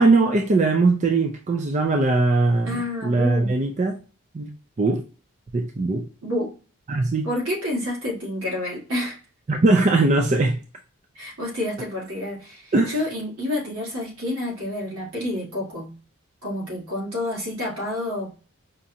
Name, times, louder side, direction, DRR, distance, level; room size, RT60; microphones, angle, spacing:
voice 1, 0.0-2.7 3.0-4.0 4.3-5.0 5.5-6.1 6.9-7.3 9.5-10.6 12.7-12.9, right 3 dB, 35° right, 3 dB, 0.4 m, -20 dB
voice 2, 2.7-3.6 6.2-6.5 7.2-9.2 11.1-16.0 16.4-18.3, left 1 dB, 85° right, -3 dB, 1.9 m, -29 dB
5.0 x 2.4 x 2.7 m, 0.36 s
head